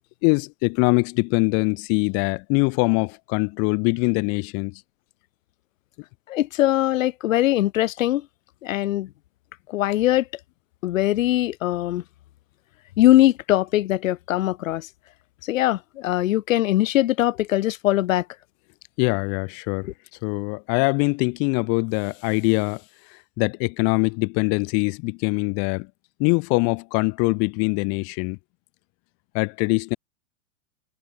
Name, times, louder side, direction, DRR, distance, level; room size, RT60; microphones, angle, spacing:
voice 1, 0.2-4.7 19.0-19.9 20.2-22.8 23.4-25.9 26.2-28.4 29.3-30.0, left 36 dB, 35° left, 0.9 m, -23 dB
voice 2, 6.3-8.2 8.6-9.1 9.7-10.2 10.8-12.0 13.0-14.8 15.5-18.2, left 14 dB, 65° left, 0.7 m, -21 dB
hypercardioid pair, 115°, 42 cm